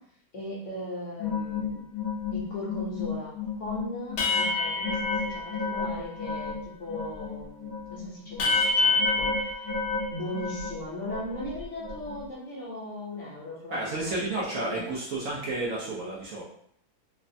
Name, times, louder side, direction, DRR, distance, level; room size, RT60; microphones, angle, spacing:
voice 1, 0.3-1.9 2.3-9.6 10.1-14.2 14.6-14.8, left 1 dB, 55° left, -5 dB, 1.0 m, -38 dB
sound 1, 1.2-6.6 6.9-10.8 11.1-12.2, left 3 dB, 75° left, 0.6 m, -29 dB
voice 2, 13.7-16.4, right 2 dB, 65° right, -5 dB, 0.8 m, -31 dB
3.2 x 2.0 x 2.6 m, 0.68 s
omnidirectional pair, 1.7 m